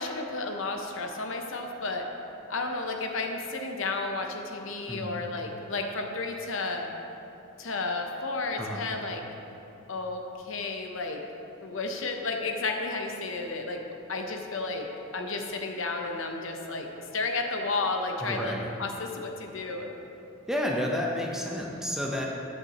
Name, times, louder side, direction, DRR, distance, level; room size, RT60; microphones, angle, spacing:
voice 1, 0.0-2.1 2.5-6.9 7.6-9.2 9.9-11.2 11.6-13.8 14.1-14.9 15.1-16.9 17.1-18.5 18.8-19.9, left 3 dB, 65° left, 3 dB, 0.8 m, -32 dB
voice 2, 18.2-18.7 20.5-22.3, left 1 dB, ahead, -2 dB, 0.8 m, -30 dB
12.5 x 7.9 x 3.0 m, 2.9 s
head